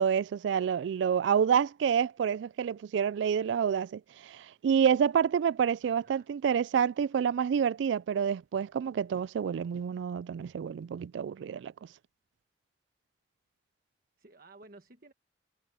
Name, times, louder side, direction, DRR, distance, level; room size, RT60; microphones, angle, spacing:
voice 1, 0.0-11.7, right 7 dB, 85° right, 0.3 m, -28 dB
voice 2, 5.8-6.3 14.2-15.1, right 2 dB, 50° right, 1.3 m, -55 dB
head